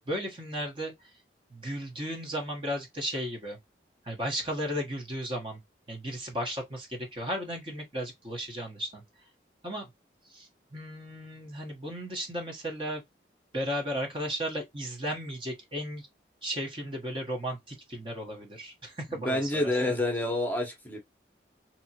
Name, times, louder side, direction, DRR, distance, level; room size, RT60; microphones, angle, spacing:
voice 1, 0.1-0.9 1.5-3.6 4.1-5.6 5.9-9.0 9.6-9.9 10.3-13.0 13.5-16.1 16.4-20.0, equal, 30° right, 1.0 m, -35 dB
voice 2, 19.1-21.0, left 1 dB, 10° left, 1.0 m, -28 dB
3.4 x 2.9 x 2.8 m
head